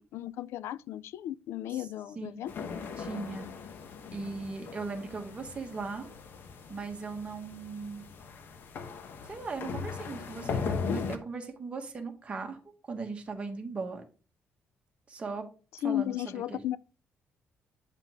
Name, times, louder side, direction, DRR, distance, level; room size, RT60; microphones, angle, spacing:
voice 1, 0.0-2.5 15.8-16.8, left 12 dB, 85° left, 0.4 m, -34 dB
voice 2, 2.1-2.5 3.0-3.5 4.1-6.1 6.7-8.0 9.3-12.6 12.9-14.0 15.1-15.4 15.8-16.6, right 4 dB, 25° right, 1.5 m, -38 dB
sound 1, 2.5-11.2, left 5 dB, 55° left, 1.0 m, -38 dB
9.0 x 5.7 x 3.6 m
cardioid pair, 160°, 4 cm